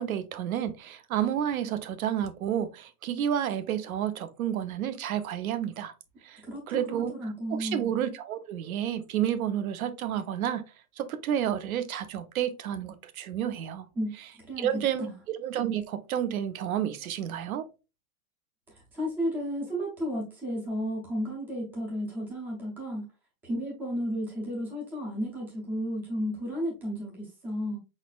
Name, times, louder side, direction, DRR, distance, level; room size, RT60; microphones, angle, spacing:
voice 1, 0.0-5.9 6.2-7.1 7.5-10.6 11.0-13.8 14.6-15.1 15.4-17.7, right 10 dB, 75° right, 0.8 m, -30 dB
voice 2, 6.4-7.8 13.9-14.1 14.4-15.1 18.7-23.0 23.4-27.8, equal, 5° right, 0.4 m, -33 dB
5.1 x 4.1 x 2.3 m
supercardioid pair, 165°, 43 cm